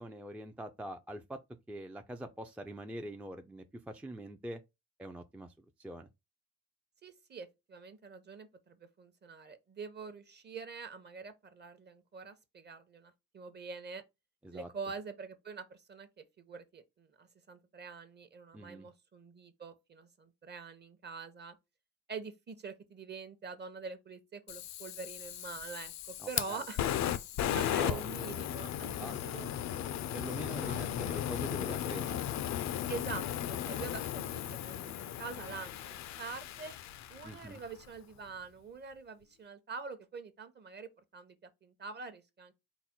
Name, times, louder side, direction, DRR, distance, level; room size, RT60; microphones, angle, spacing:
voice 1, 0.0-1.4 1.7-4.6 5.0-5.5 5.8-6.1 14.4-14.7 18.5-18.9 26.2-26.6 27.8-28.1 28.9-29.4 30.1-32.2 37.2-37.6, right 1 dB, 5° right, 0.3 m, -44 dB
voice 2, 7.0-14.0 14.5-21.6 22.1-26.8 27.5-29.5 29.9-30.8 32.9-36.7 37.1-42.5, right 5 dB, 35° right, 0.7 m, -45 dB
Fire, 24.5-37.6, left 11 dB, 65° left, 0.4 m, -36 dB
4.1 x 2.1 x 4.3 m
cardioid pair, 90°, 30 cm